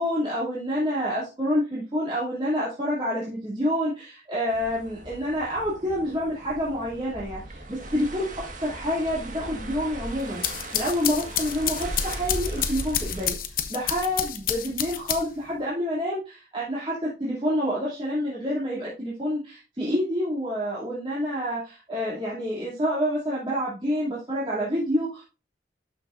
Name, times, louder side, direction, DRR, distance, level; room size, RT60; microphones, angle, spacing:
voice 1, 0.0-8.3 8.6-25.2, equal, 30° right, -8 dB, 2.7 m, -28 dB
sound 1, 4.5-13.3, right 1 dB, 45° right, 1.7 m, -37 dB
sound 2, 10.2-15.5, left 10 dB, 50° left, 0.9 m, -30 dB
12.5 x 6.0 x 2.6 m, 0.30 s
head